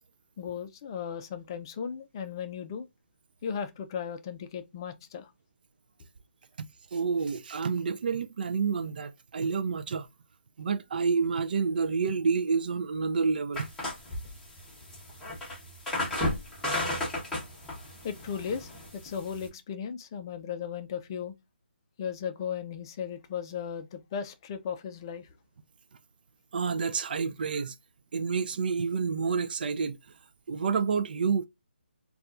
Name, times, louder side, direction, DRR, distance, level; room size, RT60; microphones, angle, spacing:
voice 1, 0.4-2.9 3.4-5.3 18.0-21.3 22.0-25.3, left 7 dB, 25° left, 0.4 m, -36 dB
voice 2, 6.6-10.1 10.6-13.7 26.5-27.7 28.1-30.0 30.5-31.5, right 5 dB, 50° right, 0.3 m, -29 dB
sound 1, 13.5-19.5, left 1 dB, 5° left, 0.8 m, -34 dB
4.0 x 2.3 x 2.4 m
hypercardioid pair, 165°, 6 cm